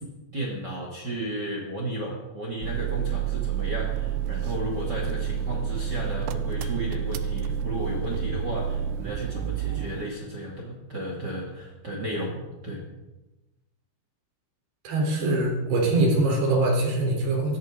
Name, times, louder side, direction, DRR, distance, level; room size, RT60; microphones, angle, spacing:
voice 1, 0.3-12.8, right 1 dB, 35° right, -2 dB, 1.6 m, -33 dB
sound 1, 2.6-10.1, right 8 dB, 80° right, 2.8 m, -29 dB
voice 2, 14.8-17.6, right 2 dB, 55° right, -2 dB, 5.7 m, -23 dB
19.0 x 14.0 x 3.9 m, 1.1 s
omnidirectional pair, 6.0 m